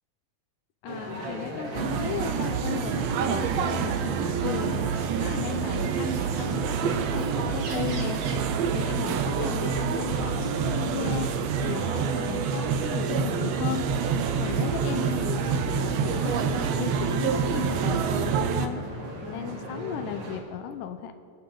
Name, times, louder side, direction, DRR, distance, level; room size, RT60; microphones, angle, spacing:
voice 1, 0.8-8.2 8.7-13.8 14.4-18.8 19.3-21.1, left 10 dB, 85° left, 9 dB, 2.3 m, -36 dB
sound 1, 0.9-20.4, equal, 60° right, 3.4 m, -37 dB
sound 2, 1.7-18.7, right 7 dB, 75° right, 1.5 m, -27 dB
26.5 x 8.9 x 3.9 m, 2.2 s
omnidirectional pair, 3.8 m